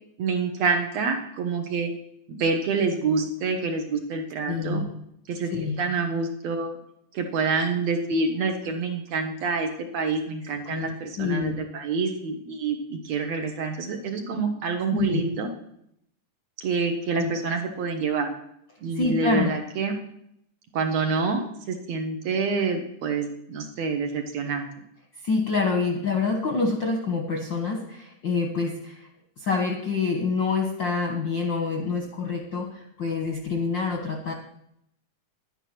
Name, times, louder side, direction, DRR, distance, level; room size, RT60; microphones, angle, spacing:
voice 1, 0.2-1.9 2.3-4.8 5.3-5.5 5.8-6.8 7.1-15.5 16.6-18.3 18.8-19.9 20.7-24.7, right 4 dB, 65° right, 4 dB, 2.0 m, -27 dB
voice 2, 4.5-4.9 5.5-5.8 10.6-11.6 14.9-15.2 17.2-17.3 18.9-19.5 25.2-29.1 29.4-34.3, left 4 dB, 55° left, 1 dB, 1.3 m, -27 dB
11.0 x 10.0 x 5.9 m, 0.74 s
omnidirectional pair, 3.8 m